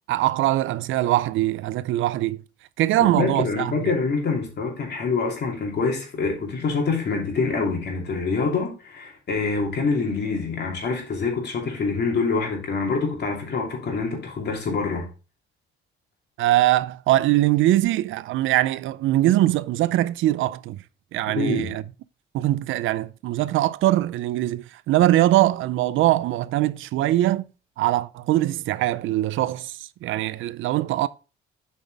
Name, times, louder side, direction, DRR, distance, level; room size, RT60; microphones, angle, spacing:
voice 1, 0.1-2.4 2.8-3.8 16.4-20.8 21.1-21.8 22.3-27.5 27.8-31.1, right 15 dB, 80° right, 0.4 m, -22 dB
voice 2, 3.0-15.1 21.3-21.8, left 4 dB, 55° left, 2.9 m, -26 dB
7.9 x 5.3 x 3.4 m
cardioid pair, 90°, 20 cm